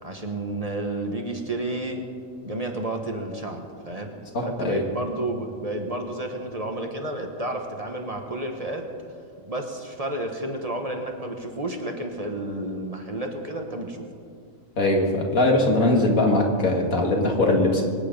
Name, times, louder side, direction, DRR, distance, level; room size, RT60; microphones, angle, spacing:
voice 1, 0.0-2.0 2.4-4.1 4.4-8.8 9.4-14.1, right 1 dB, 30° right, 3 dB, 1.2 m, -31 dB
voice 2, 4.3-4.8 14.8-17.8, left 2 dB, 85° left, 2 dB, 2.3 m, -21 dB
24.0 x 9.4 x 5.3 m, 2.2 s
omnidirectional pair, 1.4 m